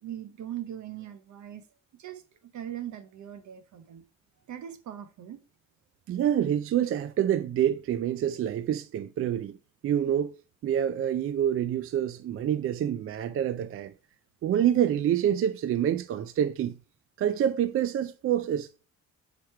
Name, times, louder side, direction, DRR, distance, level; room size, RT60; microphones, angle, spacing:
voice 1, 0.0-1.6 2.0-2.2 2.5-4.0 4.5-5.4, right 11 dB, 70° right, 0.9 m, -40 dB
voice 2, 6.1-9.6 9.8-10.3 10.6-13.9 14.4-16.8 17.2-18.7, right 10 dB, 45° right, 0.4 m, -27 dB
5.0 x 4.5 x 4.5 m
cardioid pair, 90°, 30 cm